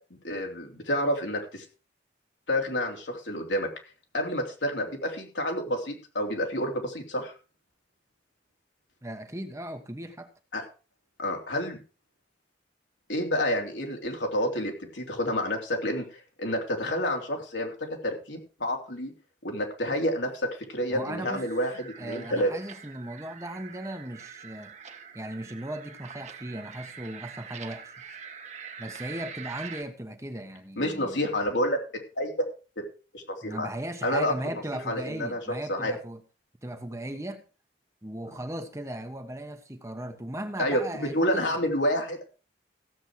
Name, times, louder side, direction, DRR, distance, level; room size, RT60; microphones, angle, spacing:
voice 1, 0.2-1.6 2.5-3.7 4.1-7.3 10.5-10.6 11.2-11.8 13.1-19.1 19.4-22.5 30.8-31.8 32.2-32.5 32.8-32.9 33.1-33.7 34.0-34.3 34.9-35.4 35.7-35.9 40.6-42.2, equal, 80° left, 3.4 m, -29 dB
voice 2, 9.0-10.3 20.9-21.4 22.0-24.7 25.1-28.0 28.8-31.3 33.4-36.2 36.6-37.4 38.0-41.6, right 1 dB, 15° right, 1.1 m, -37 dB
sound 1, 21.1-29.8, right 7 dB, 40° right, 1.4 m, -44 dB
15.5 x 7.9 x 4.8 m
head